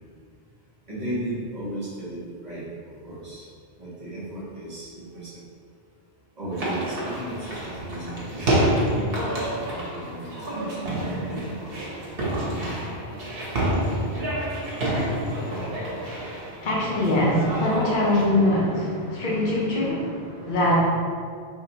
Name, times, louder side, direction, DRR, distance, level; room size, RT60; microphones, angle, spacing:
voice 1, 0.9-2.6 3.0-3.4 3.8-5.4 6.4-11.9 12.3-12.9, right 1 dB, 45° right, -8 dB, 1.4 m, -36 dB
sound 1, 6.5-18.3, right 1 dB, 65° right, 1.2 m, -28 dB
voice 2, 16.6-20.8, left 1 dB, 50° left, -5 dB, 1.0 m, -23 dB
5.0 x 3.2 x 3.0 m, 2.1 s
omnidirectional pair, 1.0 m